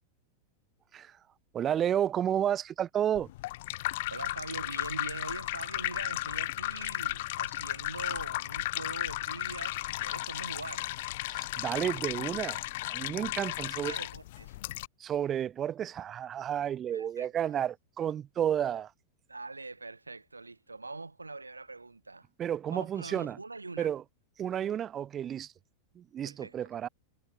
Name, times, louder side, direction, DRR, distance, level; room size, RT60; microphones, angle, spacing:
voice 1, 1.5-3.3 11.2-12.6 12.9-14.0 15.0-18.9 22.4-23.4 23.8-24.0 24.4-25.5 25.9-26.9, right 10 dB, 25° right, 0.8 m, -31 dB
sound 1, 3.1-14.9, left 18 dB, 50° left, 0.3 m, -35 dB
voice 2, 4.1-10.9 13.7-14.6 16.9-17.3 19.3-22.3 22.7-23.9 26.3-26.5, right 3 dB, 80° right, 2.0 m, -43 dB
figure-of-eight pair, 90°, 0 cm